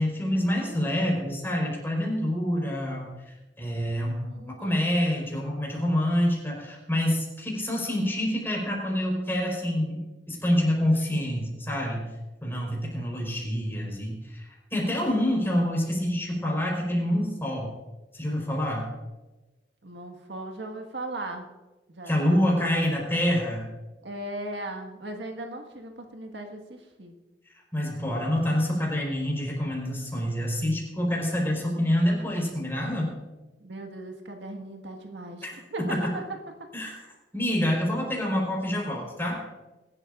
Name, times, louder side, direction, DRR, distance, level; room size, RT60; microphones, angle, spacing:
voice 1, 0.0-12.0 12.4-17.7 18.1-18.9 22.1-23.6 27.7-33.1 35.4-35.5 35.9-36.1 36.7-37.0 37.3-39.4, equal, 15° left, -2 dB, 4.4 m, -27 dB
voice 2, 4.2-4.9 19.8-21.5 21.9-22.5 24.0-27.2 33.6-36.2 36.6-37.2, right 1 dB, 90° right, 3 dB, 1.7 m, -38 dB
23.0 x 12.0 x 2.5 m, 1.1 s
head